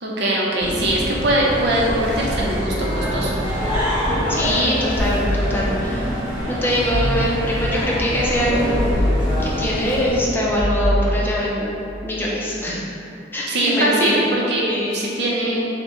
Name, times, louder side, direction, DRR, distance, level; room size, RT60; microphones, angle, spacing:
voice 1, 0.0-3.3 13.5-14.6 14.9-15.7, right 1 dB, 65° right, -3 dB, 0.7 m, -21 dB
sound 1, 0.6-10.2, equal, 10° right, 1.4 m, -25 dB
voice 2, 4.3-6.1 6.5-8.9 9.4-11.7 12.0-12.8 13.3-14.2 14.7-15.0, equal, 10° left, -6 dB, 0.5 m, -23 dB
sound 2, 5.0-6.0 6.9-7.8 8.7-9.8 10.6-11.6, left 1 dB, 80° left, 0.5 m, -24 dB
5.9 x 2.2 x 3.0 m, 2.7 s
head